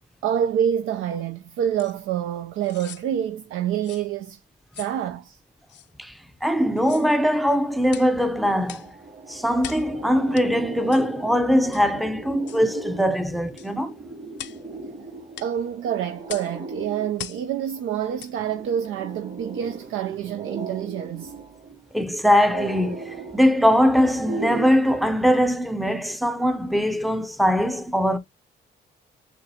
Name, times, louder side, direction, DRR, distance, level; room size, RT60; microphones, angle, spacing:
voice 1, 0.2-4.4 4.8-5.4 15.4-21.3, right 9 dB, 80° right, 0.5 m, -27 dB
sound 1, 1.8-1.9 2.6-3.1 3.8-4.1 4.7-5.0 5.7-5.9 6.8-7.1 7.9-8.1 8.7-8.9 9.6-9.9 10.3-10.5 10.9-11.1 11.7-11.9 12.5-12.7 13.6-13.7 14.4-14.6 15.3-15.5 16.3-16.5 17.2-17.4 18.2-18.3 18.8-18.9, left 11 dB, 60° left, 0.5 m, -40 dB
voice 2, 6.0-8.9 9.3-14.0 21.9-28.2, equal, ahead, 0.5 m, -21 dB
sound 2, 8.1-8.2 8.5-24.7, right 3 dB, 45° right, 1.9 m, -38 dB
7.0 x 2.6 x 2.7 m
cardioid pair, 100°, 20 cm